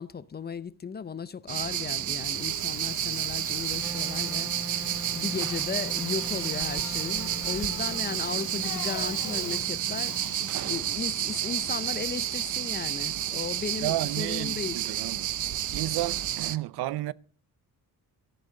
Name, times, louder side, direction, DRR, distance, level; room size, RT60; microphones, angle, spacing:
voice 1, 0.0-10.2 10.6-14.8, left 6 dB, 25° left, 0.6 m, -36 dB
sound 1, 1.5-16.6, right 12 dB, 50° right, 0.6 m, -31 dB
Bicycle, 1.7-11.8, left 7 dB, 55° left, 3.1 m, -44 dB
Wind instrument woodwind instrument, 3.8-10.8, equal, 5° right, 0.8 m, -42 dB
voice 2, 13.8-15.3 15.7-17.1, right 15 dB, 90° right, 0.6 m, -32 dB
17.0 x 14.0 x 3.9 m
wide cardioid pair, 160°, 38 cm